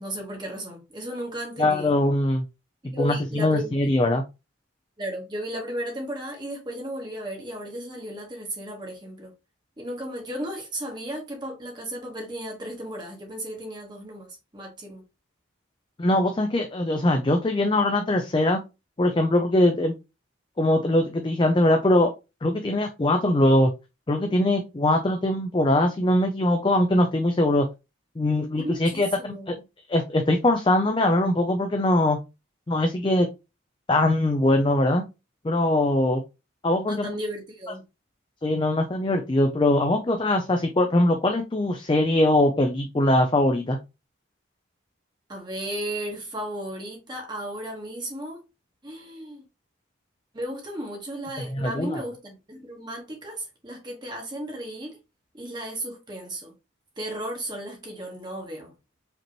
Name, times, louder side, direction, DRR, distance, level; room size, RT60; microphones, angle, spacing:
voice 1, 0.0-1.9 2.8-3.9 5.0-9.3 9.8-15.0 28.6-29.6 36.9-37.8 45.3-48.4 48.8-49.4 50.3-55.0 55.3-56.5 57.0-58.7, right 1 dB, 20° right, 1.2 m, -35 dB
voice 2, 1.6-2.4 2.8-4.2 16.0-18.6 19.0-19.9 20.6-22.1 22.4-23.7 24.1-27.7 28.2-29.6 29.9-32.2 32.7-33.3 33.9-35.0 35.4-36.2 36.6-37.1 38.4-43.8 51.5-52.0, left 1 dB, 25° left, 0.4 m, -22 dB
5.0 x 2.9 x 3.0 m
head